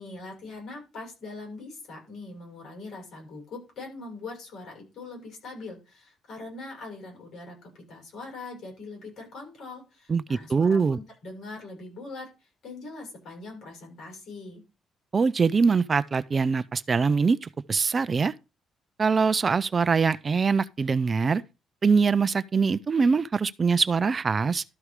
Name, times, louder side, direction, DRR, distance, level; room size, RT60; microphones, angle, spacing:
voice 1, 0.0-14.6, left 3 dB, 70° left, 7.0 m, -42 dB
voice 2, 10.1-11.0 15.1-18.3 19.0-21.4 21.8-24.6, right 5 dB, 35° right, 0.4 m, -23 dB
12.5 x 4.8 x 4.9 m
cardioid pair, 90°, 0 cm